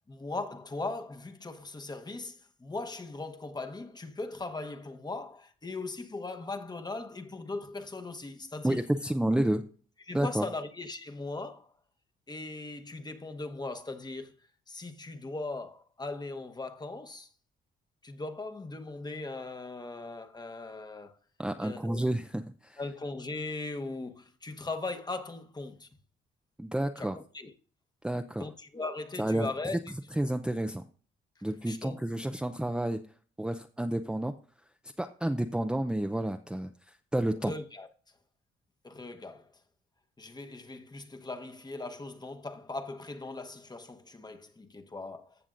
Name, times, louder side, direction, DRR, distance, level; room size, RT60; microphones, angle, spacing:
voice 1, 0.1-8.9 10.1-11.7 12.3-14.3 14.7-17.3 18.0-21.1 21.6-22.0 22.8-25.9 27.0-27.5 28.4-29.8 31.6-32.0 37.4-37.9 38.8-39.4 40.2-45.3, left 3 dB, 20° left, 1.1 m, -39 dB
voice 2, 8.6-9.6 10.1-10.4 21.4-22.8 26.6-27.2 28.0-28.5 29.2-29.5 30.2-30.8 31.4-33.0 33.4-34.3 35.0-37.5, right 1 dB, 5° right, 0.5 m, -30 dB
15.0 x 6.8 x 2.5 m
cardioid pair, 90°, 20 cm